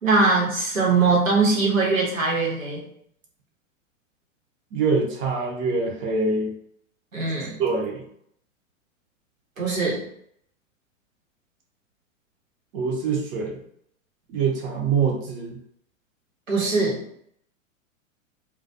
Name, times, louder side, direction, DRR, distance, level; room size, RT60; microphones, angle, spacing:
voice 1, 0.0-2.8 7.1-7.6 9.6-10.0 16.5-17.0, right 3 dB, 85° right, -4 dB, 1.1 m, -21 dB
voice 2, 4.7-6.5 7.6-8.0 12.7-13.6 14.3-15.6, right 4 dB, 30° right, -1 dB, 0.6 m, -24 dB
2.3 x 2.2 x 2.6 m, 0.69 s
figure-of-eight pair, 100°, 39 cm